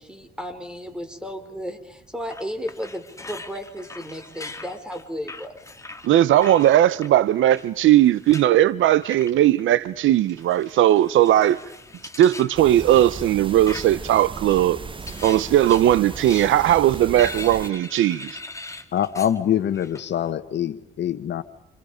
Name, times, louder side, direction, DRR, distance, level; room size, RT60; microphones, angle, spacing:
voice 1, 0.0-5.5, equal, 5° right, 5.0 m, -34 dB
sound 1, 2.3-7.1 7.6-8.5 9.0-9.6 10.3-12.6 13.2-14.0 14.4-19.4 19.7-20.0, left 2 dB, 15° left, 2.1 m, -40 dB
voice 2, 6.0-11.6 12.2-14.8 15.2-18.3, right 12 dB, 80° right, 0.9 m, -18 dB
sound 2, 12.5-17.7, right 4 dB, 25° right, 1.1 m, -36 dB
voice 3, 18.9-21.4, left 10 dB, 65° left, 1.5 m, -24 dB
29.5 x 29.0 x 5.2 m
cardioid pair, 90°, 20 cm